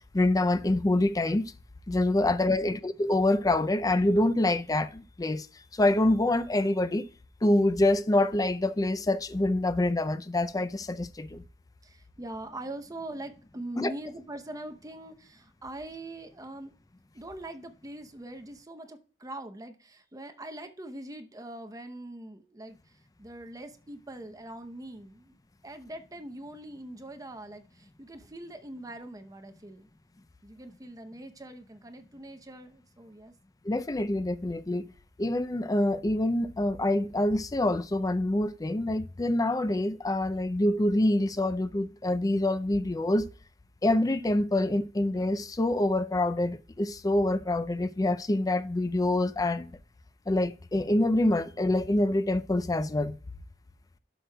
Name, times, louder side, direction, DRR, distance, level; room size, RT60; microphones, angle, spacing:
voice 1, 0.1-1.4 1.9-5.5 5.7-7.1 7.4-11.4 13.8-13.9 33.6-34.9 35.2-43.3 43.8-49.7 50.3-53.2, left 1 dB, 20° left, 0.4 m, -26 dB
voice 2, 11.8-16.7 17.1-25.3 25.6-29.9 30.4-33.3, right 1 dB, 20° right, 0.8 m, -43 dB
12.0 x 6.4 x 2.3 m
head